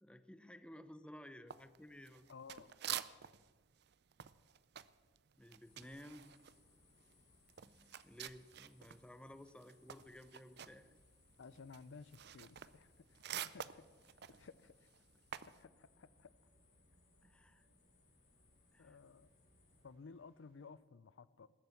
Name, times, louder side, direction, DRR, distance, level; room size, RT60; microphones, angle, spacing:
voice 1, 0.0-2.3 5.4-6.3 7.6-10.9 14.3-14.4 17.2-17.7 18.7-19.0, left 1 dB, 5° left, 11 dB, 0.6 m, -56 dB
sound 1, 1.5-3.5 3.8-9.0 9.4-15.6, right 10 dB, 55° right, 0.5 m, -48 dB
voice 2, 2.3-2.8 11.4-13.9 14.4-14.9 15.6-16.3 18.8-19.3 19.8-21.5, left 5 dB, 65° left, 18 dB, 0.5 m, -56 dB
sound 2, 5.6-19.8, left 3 dB, 40° left, 5.8 m, -71 dB
sound 3, 15.3-20.7, right 2 dB, 85° right, 6.7 m, -78 dB
20.0 x 8.9 x 7.0 m, 1.4 s
head